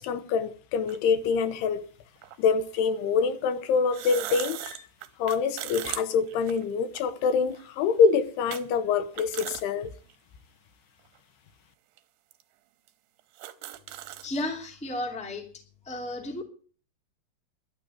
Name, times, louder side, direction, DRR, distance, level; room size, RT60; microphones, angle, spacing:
voice 1, 0.0-1.8 2.4-4.9 5.2-9.9, left 5 dB, 80° left, 2.9 m, -25 dB
sound 1, 0.9-1.0 2.2-2.4 3.8-7.1 7.5-7.6 8.5-8.6 9.0-9.6 10.1-10.2 11.1-11.2 12.0-12.1 12.3-12.4 12.9-13.0 13.2-14.3, right 14 dB, 80° right, 3.0 m, -38 dB
voice 2, 14.2-15.4 15.8-16.4, left 1 dB, ahead, 1.6 m, -33 dB
12.0 x 7.7 x 9.5 m
omnidirectional pair, 4.8 m